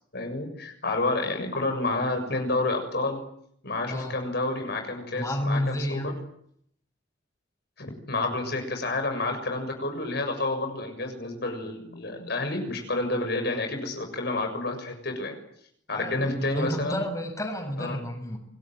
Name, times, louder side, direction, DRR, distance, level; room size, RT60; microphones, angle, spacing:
voice 1, 0.1-3.2 3.6-6.1 7.8-15.4 15.9-17.0 17.8-18.0, left 2 dB, 60° left, 5 dB, 6.9 m, -29 dB
voice 2, 5.1-6.1 15.9-18.4, equal, 15° left, 4 dB, 7.0 m, -30 dB
28.0 x 21.5 x 9.2 m, 0.70 s
head